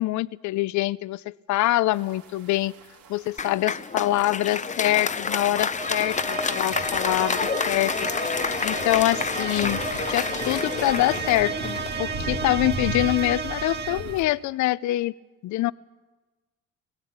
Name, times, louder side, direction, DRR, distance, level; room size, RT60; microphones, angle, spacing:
voice 1, 0.0-2.7 3.1-8.1 8.6-9.8 10.1-15.1 15.4-15.7, left 16 dB, 60° left, 19 dB, 0.6 m, -25 dB
sound 1, 1.9-14.2, right 3 dB, 70° right, 3.4 m, -39 dB
Applause, 3.4-12.7, left 5 dB, 25° left, 0.7 m, -29 dB
sound 2, 5.8-14.3, right 6 dB, 30° right, 1.6 m, -33 dB
20.5 x 16.5 x 8.7 m, 1.2 s
supercardioid pair, 70°, 32 cm